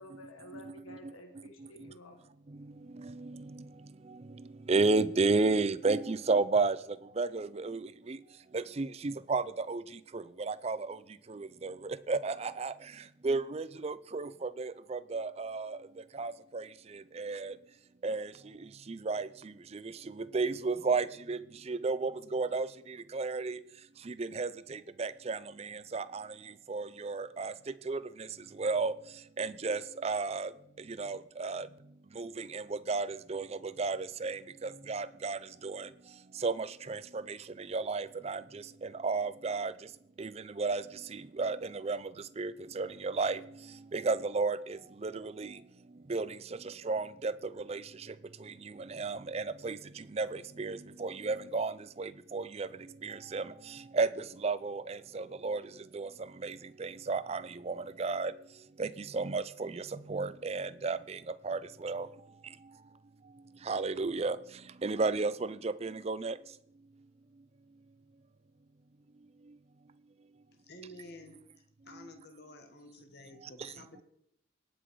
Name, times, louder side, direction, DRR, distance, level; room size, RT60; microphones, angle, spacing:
voice 1, 0.0-2.2, left 1 dB, 90° left, 1.6 m, -51 dB
voice 2, 0.6-1.0 3.0-3.6 4.7-6.8 7.2-8.2 8.5-9.8 10.1-11.0 11.3-12.7 13.2-15.8 16.1-16.7 16.9-17.5 18.0-18.3 18.9-21.4 21.7-23.6 24.1-26.3 26.7-27.5 27.9-28.0 28.6-28.9 29.4-30.5 30.9-31.7 32.2-33.5 33.8-35.9 36.4-39.7 40.2-40.3 40.6-40.8 41.1-42.0 42.4-43.4 43.9-45.5 46.1-46.4 46.6-47.8 48.5-48.6 48.9-52.7 53.0-53.5 53.9-55.6 55.9-56.1 56.4-58.3 58.8-62.1 63.7-64.4 64.8-66.4, right 3 dB, 30° right, 0.4 m, -33 dB
voice 3, 70.5-74.0, left 1 dB, 50° left, 1.4 m, -52 dB
18.0 x 6.1 x 4.7 m
head